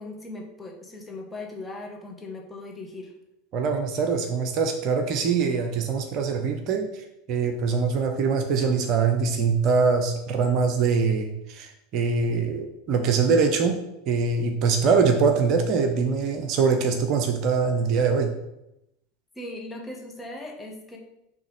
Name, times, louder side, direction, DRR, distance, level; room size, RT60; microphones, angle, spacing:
voice 1, 0.0-3.1 19.3-21.0, left 2 dB, 10° left, -1 dB, 1.4 m, -38 dB
voice 2, 3.5-18.3, right 5 dB, 50° right, 5 dB, 0.8 m, -23 dB
6.1 x 3.3 x 5.2 m, 0.85 s
figure-of-eight pair, 80°, 0 cm